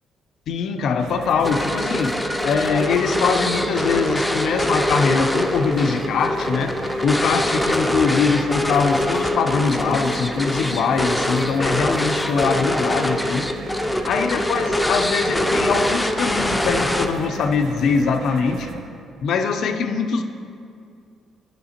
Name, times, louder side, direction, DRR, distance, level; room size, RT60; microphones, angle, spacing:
voice 1, 0.5-13.5 14.1-18.7 19.2-20.2, left 5 dB, 70° left, 7 dB, 0.4 m, -22 dB
sound 1, 1.0-18.8, right 4 dB, 80° right, 0.6 m, -36 dB
sound 2, 1.4-17.4, left 1 dB, 10° left, 0.4 m, -23 dB
9.4 x 5.7 x 2.8 m, 2.4 s
cardioid pair, 90°, 0 cm